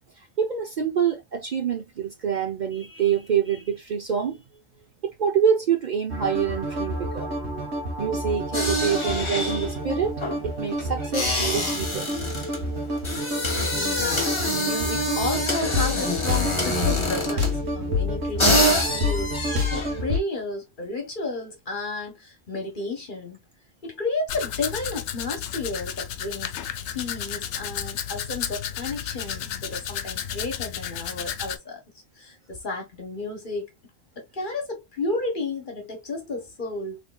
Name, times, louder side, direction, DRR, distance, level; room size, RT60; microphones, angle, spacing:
voice 1, 0.4-4.4 5.0-7.3 8.0-12.1, right 7 dB, 50° right, 0.7 m, -26 dB
sound 1, 6.1-20.2, left 1 dB, 75° right, 1.4 m, -29 dB
sound 2, 8.5-17.7 18.1-18.2 18.4-20.0, left 1 dB, 30° left, 1.0 m, -26 dB
voice 2, 13.4-23.4 23.8-26.5 26.9-31.8 32.2-33.7 34.2-37.0, left 2 dB, 50° left, 1.4 m, -32 dB
Domestic sounds home sounds, 24.3-31.6, left 9 dB, 85° left, 0.9 m, -32 dB
3.6 x 3.3 x 2.2 m
omnidirectional pair, 1.1 m